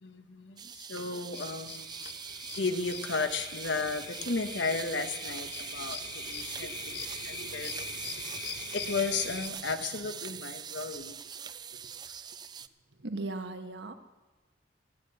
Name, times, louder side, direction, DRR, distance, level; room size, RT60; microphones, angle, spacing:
voice 1, 0.0-1.9 2.6-6.7 7.1-7.8 8.7-11.2, left 4 dB, 80° left, 8 dB, 1.1 m, -34 dB
sound 1, 0.6-12.7, right 8 dB, 25° right, 0.4 m, -42 dB
sound 2, 1.3-9.5, left 7 dB, 60° left, 0.9 m, -43 dB
voice 2, 6.6-8.3 11.7-11.9 12.9-13.9, right 2 dB, 75° right, 6 dB, 1.2 m, -41 dB
15.5 x 9.7 x 7.9 m, 1.2 s
head